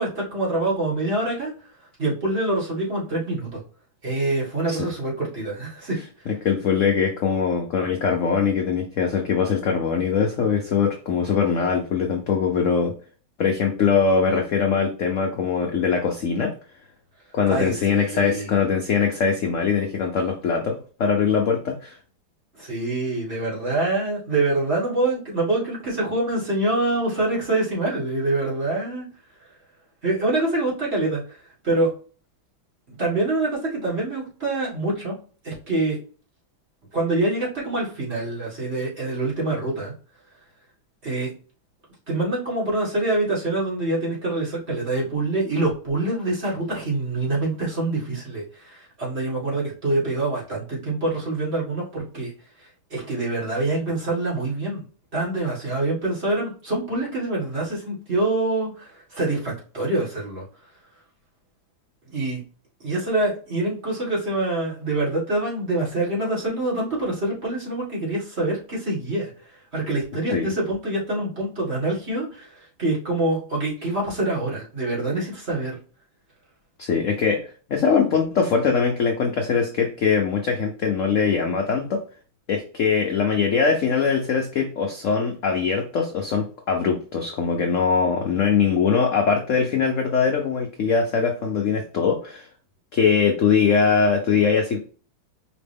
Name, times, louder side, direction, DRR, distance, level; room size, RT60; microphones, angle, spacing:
voice 1, 0.0-1.5 2.0-3.6 4.0-6.0 17.5-18.5 22.6-29.1 30.0-31.2 31.6-31.9 33.0-35.1 35.4-36.0 36.9-39.9 41.0-41.3 42.1-52.3 52.9-54.8 55.1-60.4 62.1-62.4 62.8-69.3 69.7-75.8, right 2 dB, 35° right, -5 dB, 2.2 m, -25 dB
voice 2, 6.4-12.9 13.4-16.5 17.3-22.0 70.3-70.5 76.8-82.0 82.5-92.5 92.9-94.8, left 6 dB, 70° left, 2 dB, 0.7 m, -22 dB
4.9 x 3.0 x 3.4 m, 0.38 s
omnidirectional pair, 2.2 m